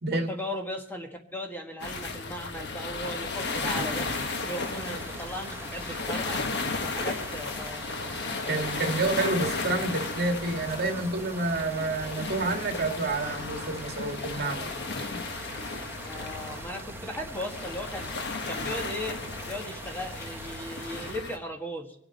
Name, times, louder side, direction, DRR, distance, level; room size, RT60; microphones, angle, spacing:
voice 1, 0.1-4.1 4.5-6.4 6.8-7.9 16.0-18.1 18.5-19.2 19.5-21.9, equal, 10° left, 2 dB, 1.5 m, -37 dB
sound 1, 1.8-21.4, left 3 dB, 60° left, 1.3 m, -34 dB
sound 2, 3.4-21.1, right 2 dB, 10° right, 0.7 m, -44 dB
voice 2, 8.4-14.7 15.1-15.2, right 2 dB, 55° right, 4 dB, 2.0 m, -29 dB
26.0 x 9.0 x 4.1 m, 0.68 s
head